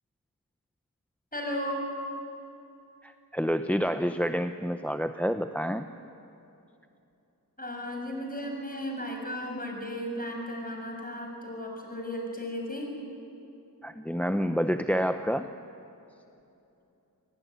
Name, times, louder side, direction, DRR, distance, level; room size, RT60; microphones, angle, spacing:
voice 1, 1.3-1.9 7.6-12.9, equal, 25° left, 1 dB, 6.4 m, -35 dB
voice 2, 3.0-5.9 13.8-15.5, equal, 5° left, 9 dB, 0.7 m, -28 dB
27.5 x 18.5 x 9.5 m, 2.8 s
wide cardioid pair, 70°, 37 cm